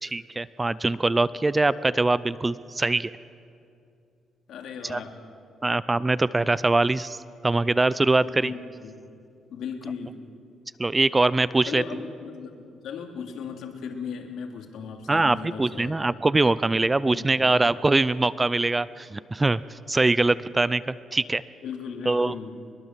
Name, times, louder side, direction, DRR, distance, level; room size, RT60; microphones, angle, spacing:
voice 1, 0.0-3.1 4.8-5.0 5.6-7.2 7.4-8.5 10.8-11.8 15.1-19.6 19.9-21.4 22.1-22.3, right 2 dB, 15° right, 17 dB, 0.5 m, -23 dB
voice 2, 4.5-5.2 8.2-9.0 9.5-10.2 11.7-16.0 17.1-17.5 21.6-22.6, left 6 dB, 75° left, 4 dB, 2.8 m, -37 dB
23.5 x 22.0 x 7.4 m, 2.5 s
cardioid pair, 125°, 0 cm